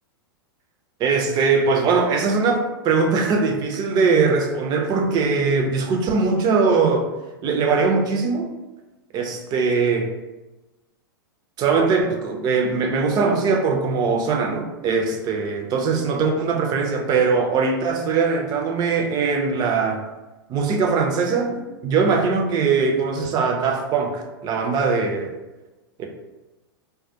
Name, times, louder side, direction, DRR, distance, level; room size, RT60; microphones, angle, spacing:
voice 1, 1.0-7.1 7.4-8.5 9.1-10.1 11.6-20.0 20.5-25.3 26.0-26.1, right 4 dB, 35° right, 2 dB, 0.5 m, -21 dB
2.2 x 2.1 x 2.7 m, 1.1 s
hypercardioid pair, 105°, 12 cm